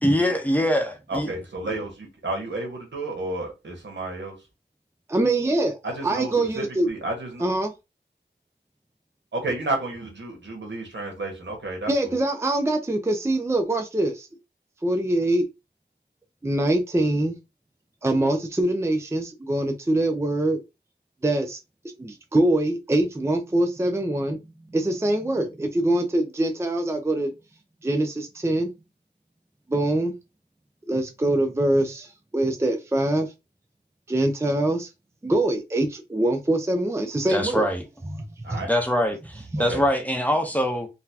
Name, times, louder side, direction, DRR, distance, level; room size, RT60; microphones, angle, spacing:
voice 1, 0.0-1.3 37.3-37.8 38.7-40.9, equal, 10° left, 0.8 m, -23 dB
voice 2, 1.1-4.3 5.8-7.4 9.3-12.2 38.4-38.7 39.7-39.8, right 2 dB, 75° right, 1.3 m, -31 dB
voice 3, 5.1-5.8 6.0-6.9 7.4-7.7 11.9-14.3 14.8-15.4 16.4-17.3 18.0-20.6 21.2-21.6 22.0-24.4 24.7-27.3 27.8-28.7 29.7-30.1 30.9-32.1 32.3-33.3 34.1-34.9 35.2-37.7 38.5-38.6, right 1 dB, 15° right, 0.5 m, -23 dB
4.0 x 2.2 x 2.8 m
wide cardioid pair, 75°, 19 cm